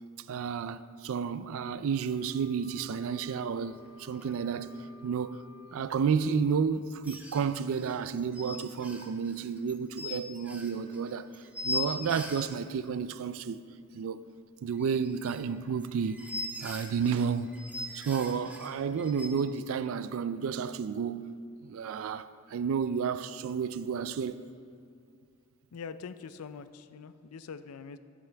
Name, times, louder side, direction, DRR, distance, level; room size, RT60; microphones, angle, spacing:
voice 1, 0.3-4.7 5.0-5.4 5.7-11.3 11.6-13.6 13.9-14.2 14.6-16.2 16.6-17.5 17.9-21.3 21.6-24.4, right 6 dB, 65° right, 0.3 m, -31 dB
Wind instrument woodwind instrument, 1.9-6.4, left 2 dB, 55° left, 1.1 m, -54 dB
sound 1, 3.9-4.0 4.1-4.3 7.0-12.5 14.7-19.3, left 2 dB, 5° right, 0.8 m, -40 dB
voice 2, 25.7-28.0, left 6 dB, 90° left, 0.4 m, -43 dB
15.0 x 7.0 x 3.4 m
head